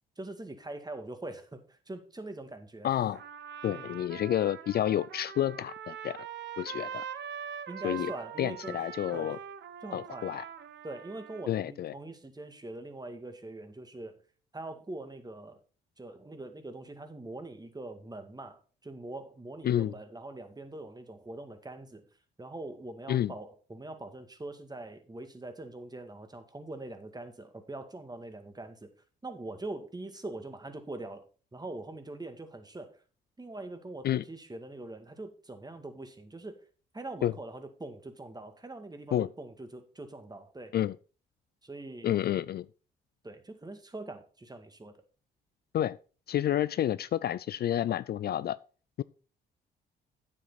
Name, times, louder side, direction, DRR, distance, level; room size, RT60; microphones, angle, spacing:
voice 1, 0.2-2.9 3.7-4.0 7.7-8.8 9.1-9.4 9.8-10.3 10.8-14.2 14.5-15.6 16.0-22.0 22.4-28.9 29.2-33.0 33.4-36.6 36.9-40.7 41.6-42.1 43.2-44.9, right 2 dB, 20° right, 2.0 m, -43 dB
voice 2, 2.8-3.2 3.6-6.2 6.6-7.0 7.8-8.1 8.4-9.4 9.9-10.4 11.5-11.9 19.6-19.9 23.1-23.3 34.0-34.2 37.2-37.3 39.1-39.3 40.7-41.0 42.0-42.7 45.7-46.0 46.3-48.6 49.0-49.1, left 11 dB, 55° left, 0.4 m, -29 dB
Trumpet, 3.1-11.6, right 8 dB, 60° right, 0.9 m, -43 dB
9.1 x 7.7 x 4.1 m
supercardioid pair, 55°, 20 cm